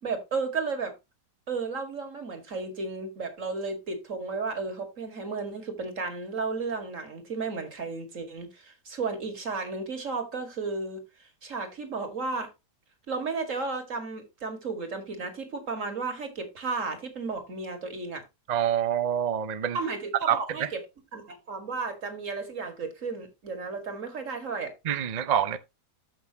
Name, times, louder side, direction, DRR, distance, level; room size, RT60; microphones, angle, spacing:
voice 1, 0.0-0.9 1.5-11.0 11.4-12.5 13.1-18.2 19.7-20.8 21.1-24.7, right 4 dB, 50° right, 2.5 m, -33 dB
voice 2, 18.5-19.8 20.3-20.7 24.8-25.6, right 9 dB, 70° right, 0.4 m, -26 dB
14.0 x 5.9 x 2.9 m
omnidirectional pair, 1.8 m